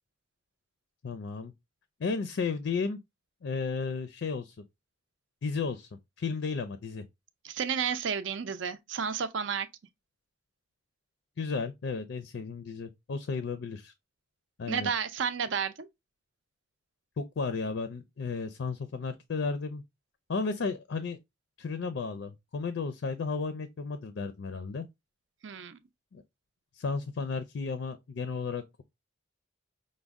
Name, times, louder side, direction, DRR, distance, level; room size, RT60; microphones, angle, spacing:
voice 1, 1.0-1.5 2.0-3.0 3.4-4.6 5.4-5.9 6.2-7.0 11.4-13.9 14.6-14.9 17.2-19.8 20.3-21.2 21.6-24.8 26.1-26.2 26.7-28.8, left 4 dB, 65° left, 0.4 m, -33 dB
voice 2, 7.4-9.7 14.7-15.9 25.4-25.8, right 7 dB, 70° right, 0.5 m, -31 dB
5.1 x 2.1 x 3.5 m
head